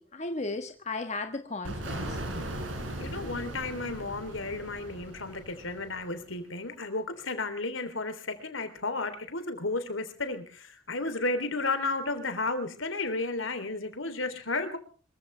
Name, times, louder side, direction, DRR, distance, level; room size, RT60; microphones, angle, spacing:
voice 1, 0.0-2.2, left 3 dB, 35° left, 6 dB, 1.4 m, -35 dB
sound 1, 1.6-6.3, right 1 dB, 85° right, 5.1 m, -38 dB
voice 2, 3.0-14.8, left 3 dB, 80° left, 9 dB, 3.4 m, -33 dB
26.0 x 15.5 x 3.4 m, 0.40 s
head